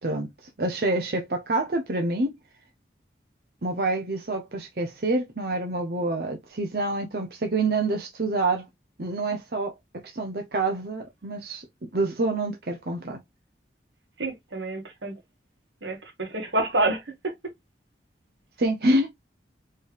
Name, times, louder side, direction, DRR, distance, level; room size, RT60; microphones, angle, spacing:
voice 1, 0.0-2.4 3.6-8.6 9.0-9.7 10.0-11.6 11.9-13.2 18.6-19.1, right 2 dB, 55° right, 0.8 m, -27 dB
voice 2, 14.2-15.1 15.8-17.3, right 2 dB, 90° right, 1.8 m, -28 dB
4.4 x 3.2 x 3.3 m
head